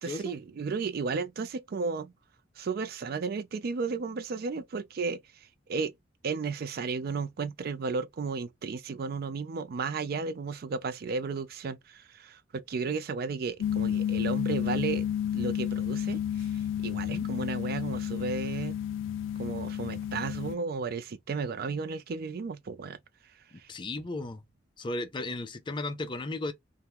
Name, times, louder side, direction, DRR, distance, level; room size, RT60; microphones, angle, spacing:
voice 1, 0.0-2.1 2.6-5.2 5.7-5.9 6.2-15.1 15.3-16.5 16.8-18.8 19.4-23.0 23.6-23.7, right 4 dB, 50° right, 0.4 m, -34 dB
sound 1, 13.6-20.6, left 9 dB, 90° left, 0.3 m, -31 dB
voice 2, 16.9-17.3 23.7-24.4 24.8-26.5, left 2 dB, 25° left, 0.4 m, -35 dB
2.9 x 2.1 x 3.4 m
head